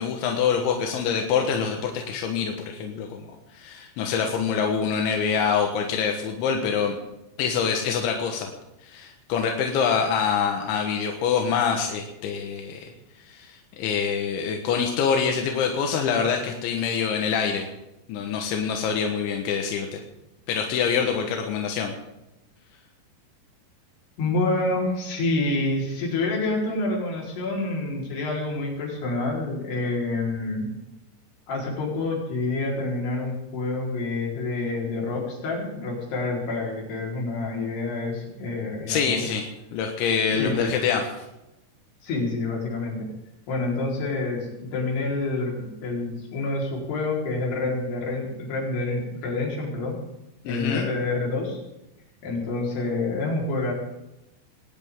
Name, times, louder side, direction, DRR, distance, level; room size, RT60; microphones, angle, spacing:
voice 1, 0.0-3.2 3.5-7.0 7.4-8.5 8.8-12.9 13.3-17.7 18.1-20.0 20.5-21.9 38.9-39.4 39.7-41.0 50.5-50.9, left 6 dB, 90° left, 2 dB, 3.8 m, -25 dB
voice 2, 24.2-30.7 31.5-39.3 40.4-40.7 42.0-43.1 43.5-50.0 50.5-51.6 52.2-53.7, left 2 dB, 65° left, -2 dB, 6.3 m, -27 dB
21.0 x 18.5 x 3.8 m, 0.92 s
omnidirectional pair, 5.2 m